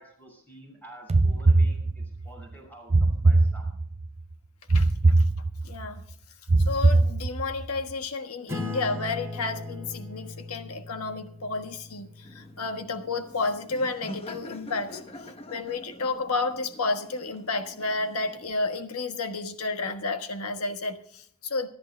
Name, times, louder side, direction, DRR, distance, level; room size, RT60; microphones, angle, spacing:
voice 1, 0.0-3.8, right 1 dB, 10° left, 1 dB, 6.0 m, -49 dB
sound 1, 1.1-2.3 2.9-4.1 4.7-5.9 6.5-7.6, right 2 dB, 30° right, 0.4 m, -21 dB
voice 2, 5.6-6.0 6.6-15.0 15.5-21.7, left 3 dB, 90° left, 6 dB, 1.4 m, -31 dB
Acoustic guitar / Strum, 8.5-13.5, left 2 dB, 15° right, 2.2 m, -39 dB
Laughter, 12.2-18.5, left 1 dB, 30° left, 1.0 m, -45 dB
25.0 x 13.0 x 2.2 m, 0.64 s
head